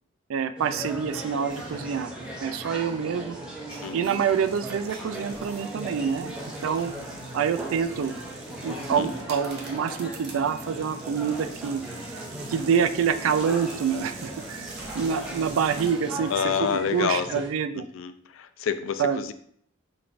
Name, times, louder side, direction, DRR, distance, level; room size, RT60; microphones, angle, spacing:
voice 1, 0.3-2.1 2.4-3.4 3.9-6.3 6.6-6.9 7.3-8.2 8.6-11.8 12.5-16.3 16.9-17.8 19.0-19.2, right 7 dB, 80° right, 10 dB, 0.3 m, -26 dB
sound 1, 0.6-17.5, right 1 dB, 5° right, 0.7 m, -39 dB
sound 2, 1.5-16.4, right 1 dB, 25° left, 1.1 m, -45 dB
voice 2, 3.8-4.2 9.0-9.1 16.3-17.5 17.7-19.3, left 7 dB, 70° left, 11 dB, 0.3 m, -28 dB
sound 3, 3.9-15.9, right 4 dB, 55° right, 0.9 m, -46 dB
4.3 x 3.9 x 2.5 m, 0.65 s
head